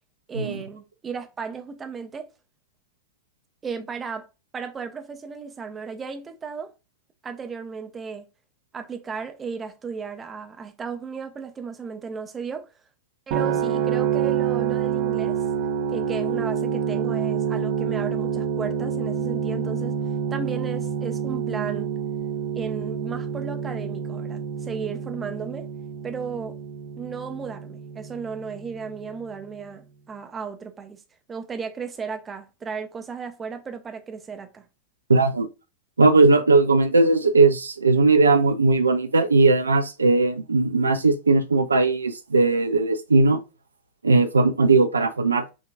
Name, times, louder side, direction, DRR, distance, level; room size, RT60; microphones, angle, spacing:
voice 1, 0.3-2.3 3.6-4.3 4.5-6.7 7.2-8.3 8.7-12.7 13.3-15.4 15.9-20.0 20.3-21.9 22.5-25.7 26.0-26.6 27.0-31.0 31.3-34.6, right 5 dB, 20° right, 0.8 m, -34 dB
sound 1, 13.3-29.2, right 7 dB, 45° right, 0.7 m, -27 dB
voice 2, 35.1-35.5 36.0-43.4 44.0-45.5, right 3 dB, 75° right, 0.5 m, -18 dB
6.2 x 2.8 x 2.3 m
figure-of-eight pair, 90°, 0 cm